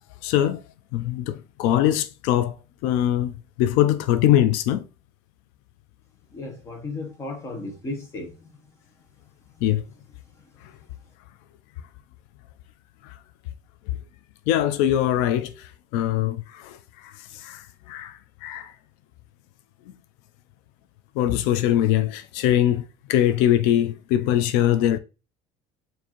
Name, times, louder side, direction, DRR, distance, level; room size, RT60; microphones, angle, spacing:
voice 1, 0.2-0.6 0.9-4.9 9.6-9.8 10.6-10.7 13.0-13.2 13.9-14.0 14.5-18.7 21.2-25.0, left 12 dB, 85° left, 0.4 m, -23 dB
voice 2, 6.3-8.5 9.5-9.6 10.3-10.5, left 2 dB, 20° left, 0.9 m, -35 dB
4.5 x 2.6 x 2.9 m
cardioid pair, 175°, 14 cm